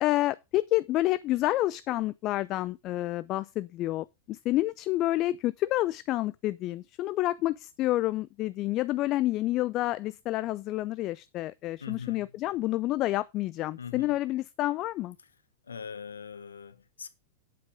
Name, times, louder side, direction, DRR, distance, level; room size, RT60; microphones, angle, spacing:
voice 1, 0.0-15.2, left 16 dB, 35° left, 0.5 m, -29 dB
voice 2, 11.8-12.3 13.8-14.2 15.7-17.1, left 6 dB, 70° left, 1.3 m, -41 dB
10.0 x 8.5 x 3.7 m
figure-of-eight pair, 90°, 0 cm